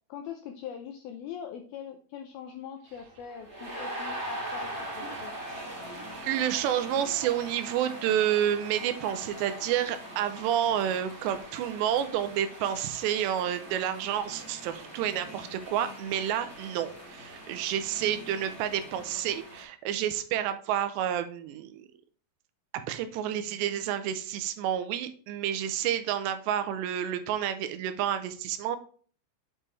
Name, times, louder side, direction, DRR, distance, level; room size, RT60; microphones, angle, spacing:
voice 1, 0.1-5.3, left 8 dB, 90° left, 4 dB, 2.2 m, -42 dB
sound 1, 2.9-19.6, right 1 dB, 20° right, 1.8 m, -42 dB
voice 2, 6.1-21.9 22.7-28.8, right 10 dB, 85° right, 10 dB, 2.8 m, -29 dB
8.2 x 5.5 x 3.1 m, 0.43 s
omnidirectional pair, 5.1 m